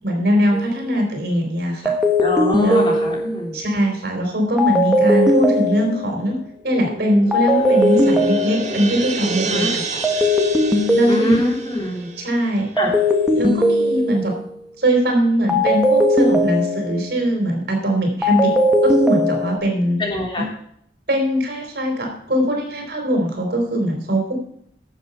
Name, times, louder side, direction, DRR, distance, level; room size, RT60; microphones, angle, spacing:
voice 1, 0.0-1.9 2.6-2.8 3.5-6.4 6.6-9.8 10.9-11.4 12.2-12.7 13.4-14.3 14.8-18.5 18.8-20.0 20.3-20.4 21.1-24.3, equal, 60° right, 2 dB, 4.0 m, -21 dB
sound 1, 0.5-0.8 1.9-3.6 4.6-6.3 7.3-9.0 10.0-11.7 12.8-14.5 15.5-17.2 18.2-19.6, left 1 dB, 5° right, 1.4 m, -19 dB
voice 2, 2.2-3.6 9.4-9.7 11.1-12.1 12.8-12.9 20.0-20.5, left 1 dB, 25° left, -2 dB, 3.2 m, -24 dB
sound 2, 6.6-13.2, right 4 dB, 40° right, 1.7 m, -30 dB
12.0 x 7.5 x 5.6 m, 0.68 s
head